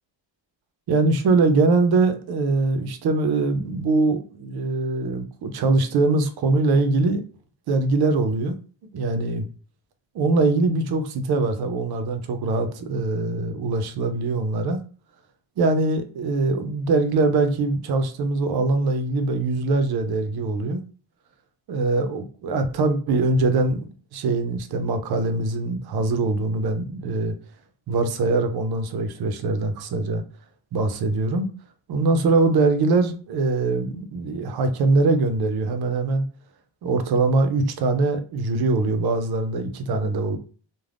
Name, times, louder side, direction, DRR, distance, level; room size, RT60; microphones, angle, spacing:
voice 1, 0.9-7.2 7.7-8.6 8.9-9.5 10.1-14.8 15.6-20.8 21.7-27.3 27.9-30.2 30.7-31.5 31.9-36.2 36.8-40.4, right 3 dB, 55° right, 0.5 m, -22 dB
3.3 x 2.1 x 2.4 m
wide cardioid pair, 180°, 46 cm